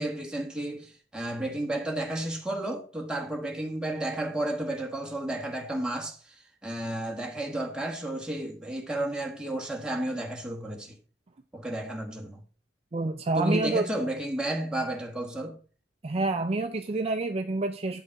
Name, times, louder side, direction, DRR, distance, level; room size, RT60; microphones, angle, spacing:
voice 1, 0.0-11.0 11.5-12.4 13.3-15.6, right 1 dB, 5° right, 1.4 m, -32 dB
voice 2, 12.9-13.9 16.0-18.0, right 2 dB, 35° right, 0.5 m, -28 dB
8.7 x 5.4 x 4.7 m
head